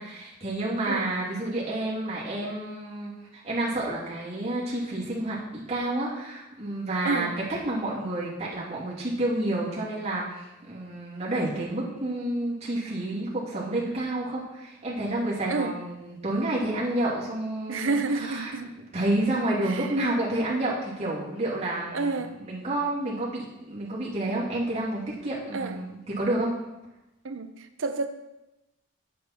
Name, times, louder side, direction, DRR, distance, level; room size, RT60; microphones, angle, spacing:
voice 1, 0.0-18.5 18.9-26.5, right 1 dB, 30° right, -7 dB, 2.7 m, -29 dB
voice 2, 17.7-18.7 19.6-19.9 21.9-22.3 25.5-25.8 27.2-28.1, right 3 dB, 60° right, 8 dB, 0.7 m, -29 dB
8.8 x 7.7 x 4.3 m, 0.96 s
head